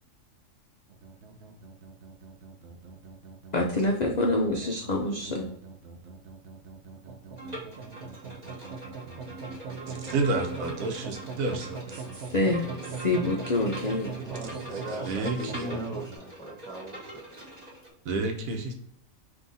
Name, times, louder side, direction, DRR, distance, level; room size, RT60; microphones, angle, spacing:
sound 1, 0.9-16.2, right 5 dB, 60° right, 0.9 m, -41 dB
voice 1, 3.5-5.5 12.1-12.7 13.0-14.1, left 2 dB, 70° left, 1 dB, 0.4 m, -26 dB
Bowed string instrument, 7.4-17.9, right 1 dB, 35° right, 1.2 m, -43 dB
voice 2, 10.1-11.8 15.1-15.8 18.1-18.8, right 3 dB, 80° right, 3 dB, 1.2 m, -29 dB
voice 3, 14.2-17.6, right 1 dB, 5° left, -3 dB, 0.8 m, -40 dB
3.7 x 2.8 x 3.9 m, 0.70 s
omnidirectional pair, 1.4 m